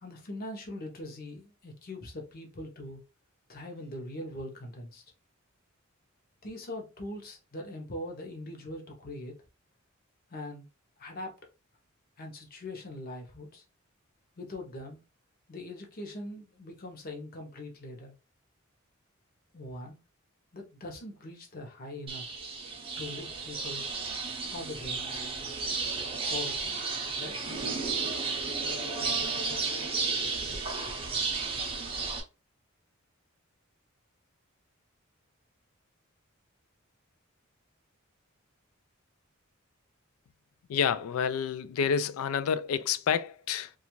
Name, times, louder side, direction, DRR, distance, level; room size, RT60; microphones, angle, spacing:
voice 1, 0.0-3.0 3.5-5.0 6.4-9.4 10.3-10.7 11.0-11.3 12.2-13.6 14.4-15.0 15.5-18.1 19.5-20.0 20.5-22.3 23.0-23.8 24.4-25.1 26.3-26.8 27.1-27.4, left 1 dB, 45° left, 0.8 m, -41 dB
sound 1, 22.1-32.2, right 4 dB, 25° right, 0.6 m, -33 dB
voice 2, 40.7-43.7, left 7 dB, 80° left, 0.3 m, -29 dB
2.5 x 2.4 x 2.9 m
head